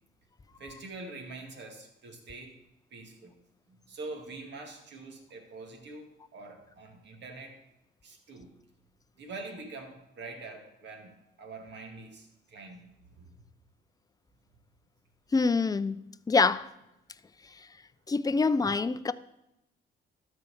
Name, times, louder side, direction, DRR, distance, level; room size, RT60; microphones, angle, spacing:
voice 1, 0.6-2.6 2.9-3.4 3.7-7.6 8.0-8.5 9.2-13.3, right 3 dB, 60° right, 2.1 m, -45 dB
voice 2, 15.3-16.0 16.3-16.7 18.1-19.1, left 4 dB, 20° left, 0.4 m, -25 dB
12.5 x 4.6 x 6.9 m
cardioid pair, 90°, 20 cm